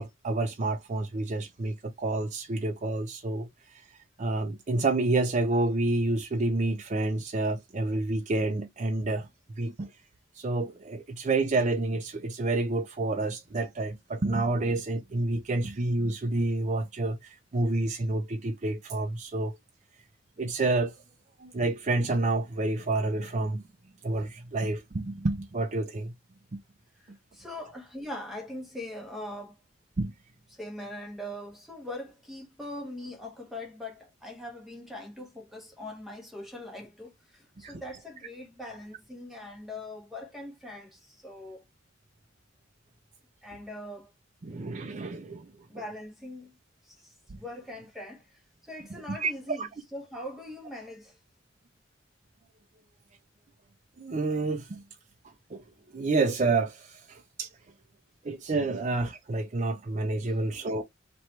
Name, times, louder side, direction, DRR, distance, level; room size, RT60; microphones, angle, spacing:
voice 1, 0.0-3.5 4.2-9.3 9.6-9.9 10.4-19.6 20.4-20.9 21.4-23.6 24.0-26.1 30.0-30.1 37.6-37.7 44.4-45.5 47.3-47.4 49.1-49.3 49.6-49.7 54.0-54.8 55.5-55.6 55.9-57.5 58.2-60.8, right 2 dB, 40° right, 0.5 m, -29 dB
voice 2, 27.0-29.6 30.5-41.6 43.4-44.1 45.7-46.6 46.8-51.2 60.2-60.7, left 1 dB, ahead, 0.8 m, -42 dB
3.0 x 2.9 x 4.4 m
head